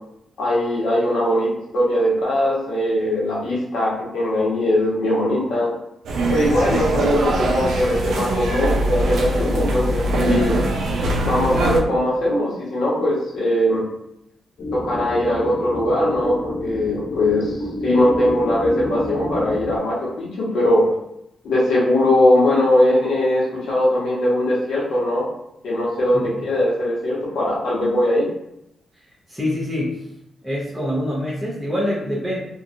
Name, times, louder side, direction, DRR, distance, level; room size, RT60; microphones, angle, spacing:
voice 1, 0.4-5.7 6.3-10.5 11.2-13.8 14.7-20.8 21.4-25.2 25.6-28.2, left 1 dB, 85° left, -6 dB, 1.2 m, -20 dB
sound 1, 6.0-11.8, right 1 dB, 90° right, 0.4 m, -22 dB
sound 2, 14.6-19.8, left 1 dB, 50° left, 0.5 m, -29 dB
voice 2, 29.3-30.1 30.4-32.4, left 1 dB, ahead, -11 dB, 0.8 m, -25 dB
2.9 x 2.4 x 2.6 m, 0.81 s
wide cardioid pair, 145°, 0 cm